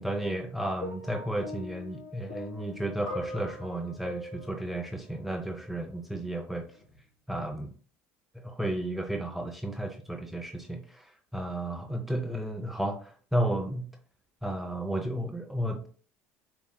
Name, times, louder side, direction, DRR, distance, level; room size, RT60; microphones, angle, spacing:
voice 1, 0.0-6.7 7.3-7.7 8.4-13.9 14.4-15.9, right 1 dB, ahead, 4 dB, 0.6 m, -33 dB
sound 1, 0.8-5.9 6.8-7.0, left 1 dB, 60° left, 2.4 m, -42 dB
7.2 x 3.0 x 2.2 m, 0.42 s
supercardioid pair, 85°, 7 cm